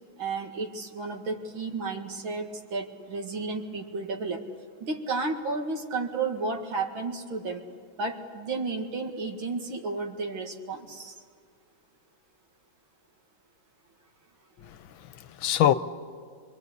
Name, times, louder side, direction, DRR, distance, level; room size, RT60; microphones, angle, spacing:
voice 1, 0.2-4.4 4.8-7.6 8.0-11.2, right 3 dB, 80° right, 3 dB, 2.8 m, -32 dB
voice 2, 14.6-15.7, left 11 dB, 80° left, 13 dB, 1.6 m, -25 dB
27.5 x 21.5 x 8.2 m, 2.1 s
omnidirectional pair, 2.2 m